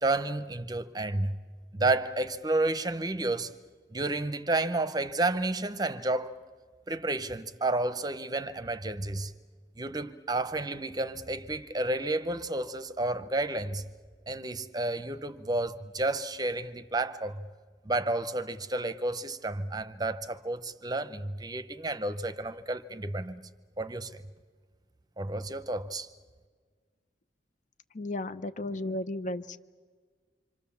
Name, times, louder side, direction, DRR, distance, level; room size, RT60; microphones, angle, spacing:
voice 1, 0.0-1.4 1.7-3.5 3.9-6.4 6.9-9.3 9.8-13.8 14.3-17.5 17.8-23.5 23.8-24.2 25.2-26.1, right 2 dB, 25° right, 0.8 m, -31 dB
voice 2, 27.9-29.6, left 1 dB, 45° left, 0.9 m, -34 dB
26.5 x 26.0 x 7.2 m
head